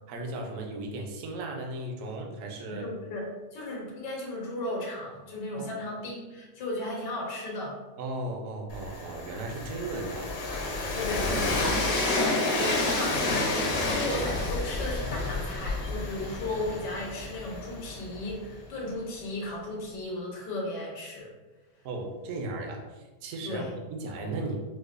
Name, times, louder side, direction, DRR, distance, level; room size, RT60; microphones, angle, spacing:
voice 1, 0.1-2.8 5.5-5.7 8.0-10.3 11.3-11.6 21.8-23.6 23.9-24.6, right 2 dB, 65° right, 1 dB, 0.8 m, -36 dB
voice 2, 2.6-7.8 10.9-21.3 23.4-23.7, left 1 dB, 85° left, -2 dB, 1.5 m, -35 dB
Train, 8.7-18.5, left 2 dB, 65° left, 1.0 m, -30 dB
4.8 x 2.1 x 2.4 m, 1.2 s
omnidirectional pair, 1.8 m